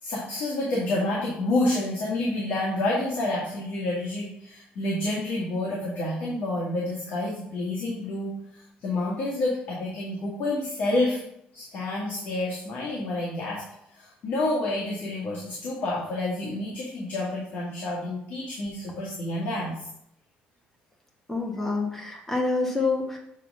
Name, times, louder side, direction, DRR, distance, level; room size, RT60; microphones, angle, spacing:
voice 1, 0.0-11.2 11.5-13.6 13.9-19.8, left 2 dB, 55° left, -5 dB, 1.8 m, -29 dB
voice 2, 21.3-23.2, left 3 dB, 10° left, 0 dB, 1.2 m, -27 dB
7.4 x 3.6 x 5.4 m, 0.75 s
cardioid pair, 170°, 4 cm